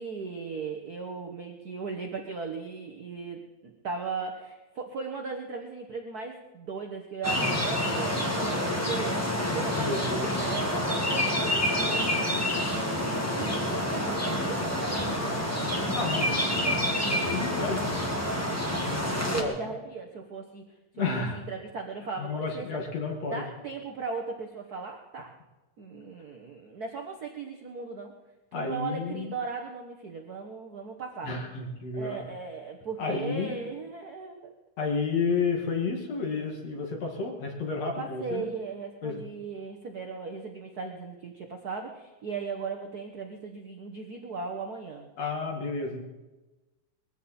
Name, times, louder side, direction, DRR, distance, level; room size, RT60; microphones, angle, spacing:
voice 1, 0.0-9.9 10.2-12.6 13.3-16.9 19.0-20.6 21.1-22.8 23.3-25.3 25.8-28.1 28.5-31.3 31.9-34.5 37.9-45.1, right 4 dB, 65° right, 3 dB, 0.9 m, -37 dB
sound 1, 7.2-19.4, left 1 dB, 5° left, 1.2 m, -28 dB
voice 2, 9.8-10.3 15.9-18.0 18.7-19.5 20.9-21.4 22.2-23.4 28.5-29.3 31.2-32.3 33.0-33.6 34.8-38.5 39.0-39.2 45.2-46.0, left 4 dB, 60° left, 1 dB, 3.1 m, -31 dB
21.0 x 15.0 x 4.3 m, 1.1 s
omnidirectional pair, 3.4 m